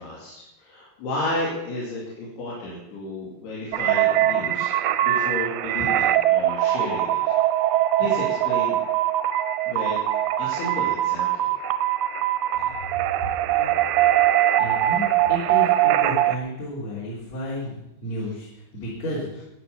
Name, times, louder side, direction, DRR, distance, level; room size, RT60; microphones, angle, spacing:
voice 1, 0.0-7.2 8.0-8.8 9.7-10.0 10.4-11.5, left 1 dB, 90° left, -5 dB, 4.5 m, -32 dB
sound 1, 3.7-16.4, right 13 dB, 90° right, 2.7 m, -22 dB
voice 2, 13.5-13.8 14.6-19.4, equal, 45° left, -7 dB, 4.0 m, -33 dB
13.0 x 9.1 x 6.8 m, 0.92 s
omnidirectional pair, 4.5 m